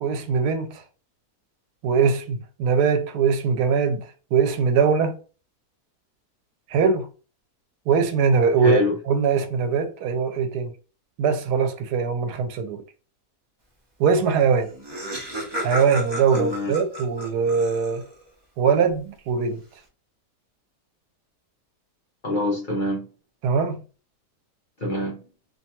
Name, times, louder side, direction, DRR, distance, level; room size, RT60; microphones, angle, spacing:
voice 1, 0.0-0.8 1.8-5.2 6.7-7.1 7.9-10.7 11.2-12.8 14.0-14.7 15.6-18.0 18.6-19.6 23.4-23.8, right 5 dB, 90° right, 1.1 m, -21 dB
voice 2, 8.6-9.0 16.3-16.7 22.2-23.1 24.8-25.2, left 1 dB, 45° left, 0.7 m, -25 dB
Laughter, 14.3-14.4 14.6-18.2, equal, 30° right, 0.5 m, -33 dB
2.7 x 2.3 x 2.8 m
omnidirectional pair, 1.6 m